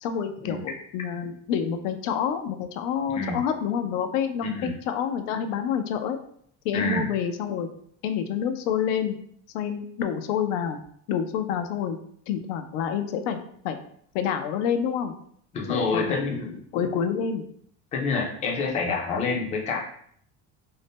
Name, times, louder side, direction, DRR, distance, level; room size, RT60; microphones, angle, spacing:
voice 1, 0.0-6.2 6.6-7.7 8.0-9.2 9.5-10.8 11.1-12.0 12.3-13.8 14.1-15.1 15.7-17.4, left 7 dB, 85° left, 7 dB, 0.5 m, -28 dB
voice 2, 4.4-4.7 6.7-7.0 15.5-16.5 17.9-19.8, left 4 dB, 20° left, -1 dB, 0.4 m, -27 dB
2.6 x 2.0 x 3.4 m, 0.65 s
cardioid pair, 150°, 36 cm